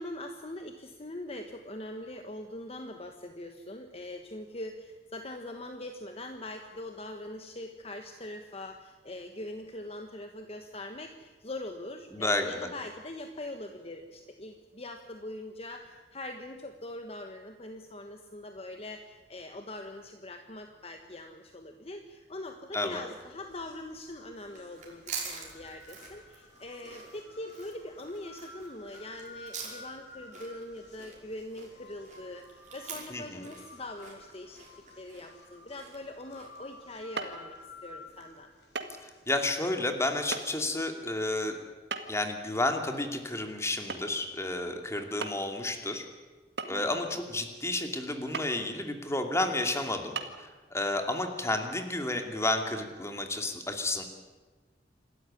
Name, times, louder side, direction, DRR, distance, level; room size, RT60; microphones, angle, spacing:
voice 1, 0.0-34.6 34.9-38.5 46.7-47.1, left 1 dB, 35° left, 5 dB, 1.4 m, -42 dB
voice 2, 12.1-12.5 22.7-23.0 33.1-33.5 39.3-41.5 42.1-46.0 46.7-54.0, left 2 dB, 15° left, 5 dB, 2.6 m, -31 dB
sound 1, 23.2-39.6, left 2 dB, 75° left, 5.7 m, -53 dB
sound 2, 24.4-36.7, right 6 dB, 45° right, 5.4 m, -45 dB
sound 3, 37.2-37.4 38.8-39.0 39.3-39.4 40.3-40.4 41.9-42.3 43.9-44.2 44.5-44.6 45.2-45.5 46.6-47.1 48.3-48.6 49.2-49.3 50.2-50.3, right 4 dB, 70° right, 2.0 m, -36 dB
27.0 x 13.5 x 9.9 m, 1.3 s
head